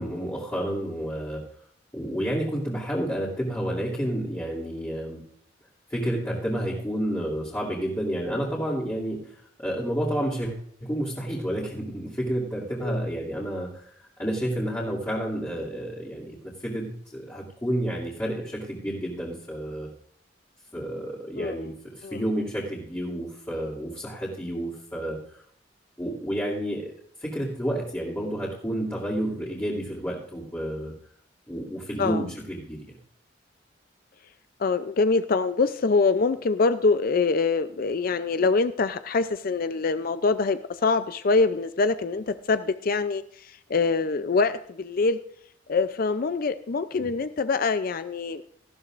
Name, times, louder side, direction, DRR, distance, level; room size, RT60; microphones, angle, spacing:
voice 1, 0.0-1.4 1.9-5.2 5.9-16.4 16.6-19.9 20.7-25.4 26.0-26.9 27.2-30.9 31.5-33.0 47.0-47.1, equal, 15° left, -8 dB, 2.6 m, -30 dB
voice 2, 21.4-21.7 22.0-22.2 32.0-32.2 34.6-43.2 43.7-45.2 45.7-48.4, left 4 dB, 50° left, 11 dB, 0.5 m, -24 dB
18.0 x 14.0 x 2.5 m, 0.66 s
head